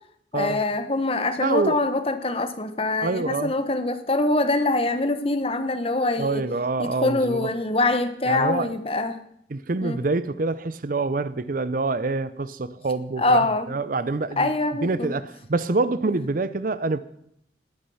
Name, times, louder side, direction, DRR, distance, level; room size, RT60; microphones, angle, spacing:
voice 1, 0.3-6.4 6.8-9.2 9.8-10.0 13.2-13.7 14.4-15.1, left 2 dB, 30° left, 1.2 m, -24 dB
voice 2, 1.4-1.8 3.0-3.5 6.2-7.5 8.3-8.7 9.5-14.5 14.8-17.0, right 3 dB, 50° right, 0.6 m, -26 dB
19.5 x 8.8 x 5.6 m
head